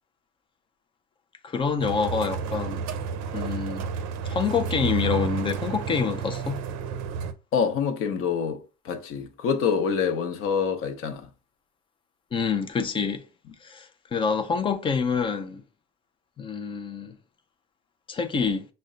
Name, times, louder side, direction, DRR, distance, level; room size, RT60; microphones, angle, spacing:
voice 1, 1.4-2.9 3.3-3.9 4.3-6.6 12.3-13.2 13.6-15.6 16.4-17.2 18.1-18.7, left 6 dB, 15° left, 0.4 m, -27 dB
sound 1, 1.8-7.3, right 6 dB, 55° right, 0.6 m, -31 dB
voice 2, 7.5-11.3, left 6 dB, 40° left, 0.8 m, -26 dB
6.4 x 2.2 x 3.7 m
cardioid pair, 165°, 33 cm